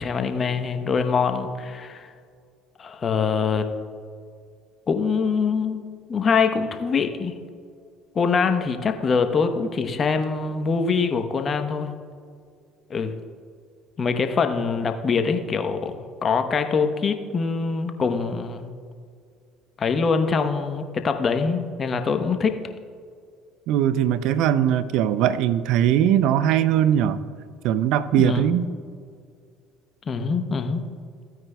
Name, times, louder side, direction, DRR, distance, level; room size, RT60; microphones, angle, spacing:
voice 1, 0.0-2.1 2.8-3.7 4.9-7.3 8.1-11.9 12.9-13.1 14.0-15.9 16.2-18.7 19.8-22.6 28.2-28.4 30.1-30.8, left 5 dB, 40° left, 7 dB, 0.9 m, -24 dB
voice 2, 23.7-27.2 27.6-28.7, right 10 dB, 65° right, 14 dB, 0.5 m, -20 dB
15.5 x 9.3 x 2.3 m, 2.2 s
hypercardioid pair, 65°, 0 cm